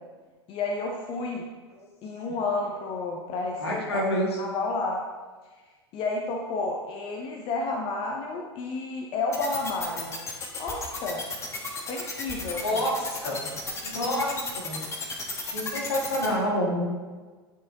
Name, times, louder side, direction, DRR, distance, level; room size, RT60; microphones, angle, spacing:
voice 1, 0.5-1.5 2.0-4.0 4.4-5.0 5.9-10.2 10.6-11.2 11.9-12.8, left 3 dB, 40° left, 1 dB, 0.9 m, -31 dB
voice 2, 3.6-4.3 12.6-13.4 13.8-14.8 15.4-16.8, left 1 dB, 75° left, -3 dB, 2.1 m, -28 dB
sound 1, 9.3-16.3, left 3 dB, 20° left, 1.3 m, -33 dB
10.0 x 6.3 x 2.9 m, 1.4 s
figure-of-eight pair, 85°, 14 cm